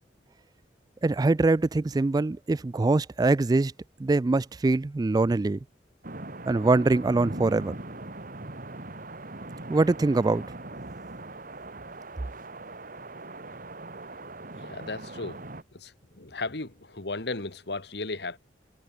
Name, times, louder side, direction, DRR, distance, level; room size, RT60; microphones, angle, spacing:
voice 1, 1.0-3.7 4.0-5.6 6.5-7.7 9.7-10.4, right 3 dB, 20° right, 0.3 m, -23 dB
sound 1, 6.0-15.6, right 2 dB, 50° right, 3.0 m, -40 dB
voice 2, 14.6-15.4 15.7-15.9 16.2-18.4, left 3 dB, 65° left, 1.9 m, -35 dB
head